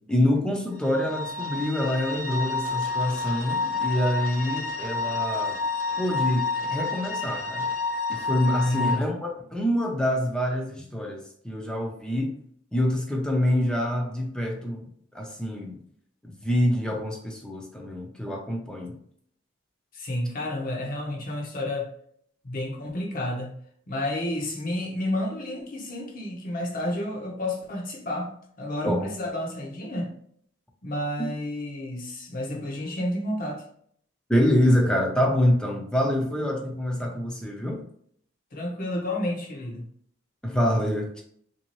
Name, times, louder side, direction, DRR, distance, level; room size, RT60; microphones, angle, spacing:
voice 1, 0.1-5.6 6.0-7.7 8.1-12.4 12.7-15.8 16.2-18.9 28.9-29.1 34.3-37.8 40.4-41.2, left 1 dB, 5° left, 1 dB, 0.5 m, -26 dB
sound 1, 0.7-9.0, left 3 dB, 60° left, 1.2 m, -29 dB
voice 2, 8.6-9.1 19.9-21.9 22.4-23.5 23.9-28.3 28.6-30.1 30.8-33.7 38.5-39.8, left 1 dB, 45° left, 1 dB, 0.8 m, -30 dB
3.5 x 2.7 x 3.0 m, 0.64 s
head